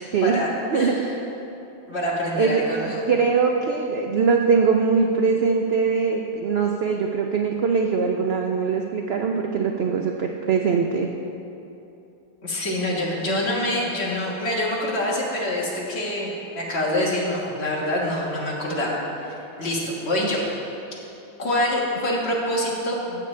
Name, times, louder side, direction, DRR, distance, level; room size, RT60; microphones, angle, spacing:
voice 1, 0.7-1.1 1.9-3.0 12.4-18.9 19.6-20.4 21.4-23.2, left 1 dB, 40° left, -4 dB, 1.7 m, -25 dB
voice 2, 2.3-11.1, right 5 dB, 85° right, 2 dB, 0.5 m, -22 dB
15.0 x 6.8 x 3.2 m, 2.9 s
omnidirectional pair, 1.7 m